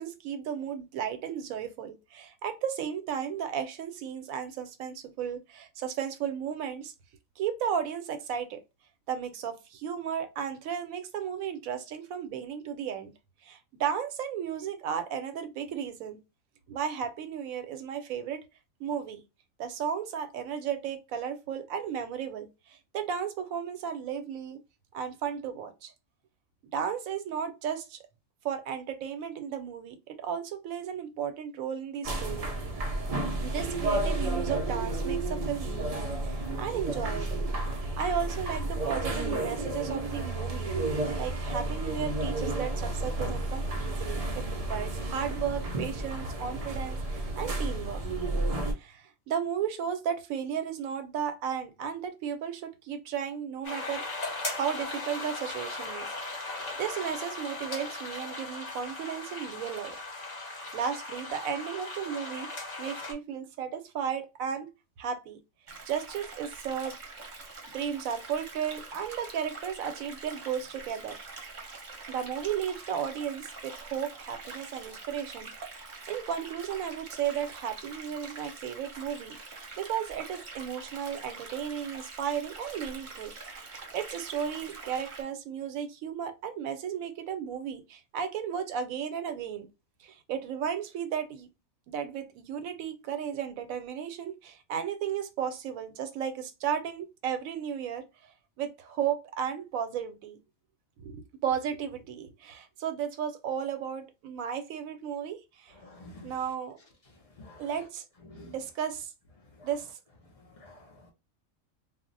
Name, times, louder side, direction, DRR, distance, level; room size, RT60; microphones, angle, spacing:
voice 1, 0.0-6.9 7.4-8.6 9.1-13.1 13.4-16.2 16.7-18.4 18.8-19.2 19.6-24.6 24.9-25.9 26.7-28.0 28.4-32.6 33.4-40.7 41.2-48.0 48.7-54.1 54.4-56.1 56.8-59.9 60.7-64.7 65.0-65.4 65.9-67.0 67.7-71.2 72.1-75.5 76.1-83.3 83.9-89.7 90.0-91.5 91.9-98.0 98.6-100.4 101.0-105.7 106.2-106.8 107.6-108.0 108.4-109.1 109.6-109.9, right 8 dB, 85° right, 1.0 m, -34 dB
sound 1, 32.0-48.7, right 2 dB, 60° right, 0.3 m, -31 dB
sound 2, 53.6-63.1, left 2 dB, 35° left, 0.8 m, -38 dB
sound 3, 65.7-85.2, right 3 dB, 45° right, 0.7 m, -45 dB
voice 2, 105.7-106.3 107.4-107.8 108.3-108.6 109.6-109.7 110.3-111.1, left 2 dB, 60° left, 0.3 m, -50 dB
2.3 x 2.0 x 3.8 m
omnidirectional pair, 1.4 m